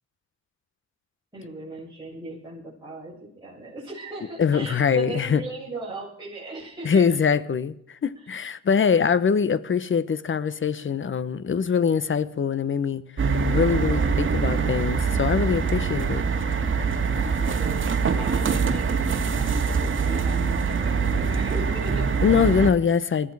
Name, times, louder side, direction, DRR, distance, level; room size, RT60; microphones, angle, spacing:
voice 1, 1.3-7.1 8.2-8.3 17.1-17.8 18.1-22.1, right 2 dB, 15° right, 7.7 m, -38 dB
voice 2, 4.4-5.4 6.8-13.0 13.4-16.2 22.2-23.3, left 6 dB, 40° left, 1.1 m, -23 dB
sound 1, 13.2-22.7, right 5 dB, 40° right, 2.3 m, -24 dB
21.0 x 14.0 x 4.9 m
cardioid pair, 80°, 32 cm